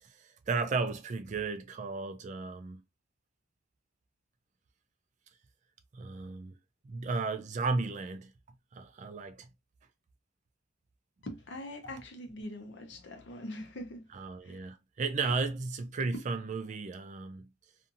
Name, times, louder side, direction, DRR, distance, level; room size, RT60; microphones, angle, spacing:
voice 1, 0.2-2.8 5.9-6.5 6.8-8.3 8.7-9.5 14.1-17.5, right 4 dB, 35° right, 0.3 m, -34 dB
voice 2, 11.2-14.1 14.4-14.6, left 1 dB, 60° left, 0.6 m, -43 dB
2.5 x 2.5 x 2.6 m
head